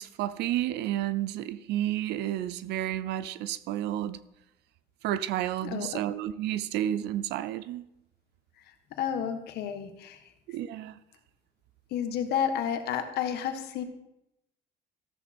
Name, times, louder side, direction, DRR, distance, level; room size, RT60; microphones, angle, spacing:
voice 1, 0.0-4.2 5.0-7.8 10.5-10.9, right 12 dB, 85° right, 0.6 m, -31 dB
voice 2, 5.6-6.0 8.9-10.3 11.9-13.8, left 8 dB, 75° left, 1.3 m, -31 dB
14.0 x 7.2 x 4.3 m
cardioid pair, 110°, 17 cm